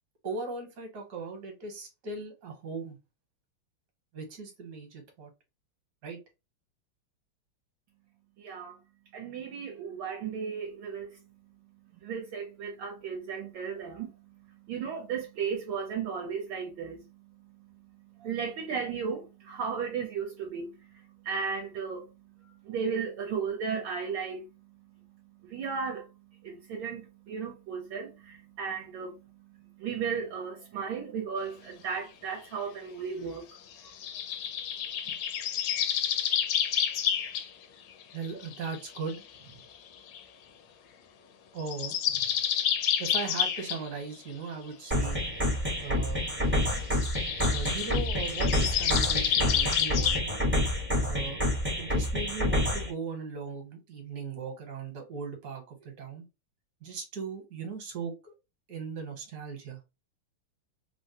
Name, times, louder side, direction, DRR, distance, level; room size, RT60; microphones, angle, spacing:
voice 1, 0.2-3.0 4.1-5.3 6.0-6.2 35.1-35.2 38.1-39.2 39.4-39.6 41.5-42.3 43.0-45.2 45.8-46.8 47.5-50.4 51.1-51.4 51.8-56.2 56.8-58.3 58.7-59.8, right 4 dB, 55° right, 1.4 m, -38 dB
voice 2, 8.4-8.8 9.1-11.2 12.0-14.1 14.7-17.0 18.2-20.7 21.2-22.0 22.6-24.4 25.4-26.1 26.4-29.2 29.8-33.4, right 6 dB, 75° right, 1.3 m, -35 dB
sound 1, 34.0-37.5 38.0-39.2 40.1-40.2 41.6-43.9 47.0-50.2, left 9 dB, 75° left, 1.1 m, -29 dB
sound 2, 44.9-52.9, left 1 dB, 15° right, 0.4 m, -28 dB
3.6 x 2.1 x 2.7 m
omnidirectional pair, 2.3 m